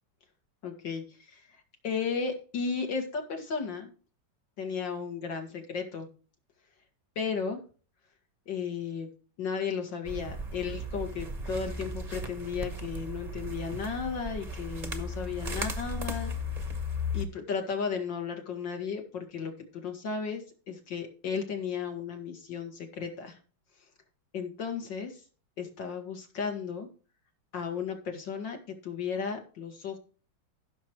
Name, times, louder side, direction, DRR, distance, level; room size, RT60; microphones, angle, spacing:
voice 1, 0.6-1.4 1.8-3.9 4.6-6.1 7.2-7.6 8.5-9.1 9.4-16.3 17.1-23.4 24.3-25.2 25.6-26.9 27.5-28.6 28.8-30.0, left 6 dB, 75° left, 4 dB, 2.6 m, -34 dB
sound 1, 10.0-17.2, left 1 dB, 30° right, 0.9 m, -36 dB
15.5 x 6.7 x 3.1 m, 0.38 s
omnidirectional pair, 2.0 m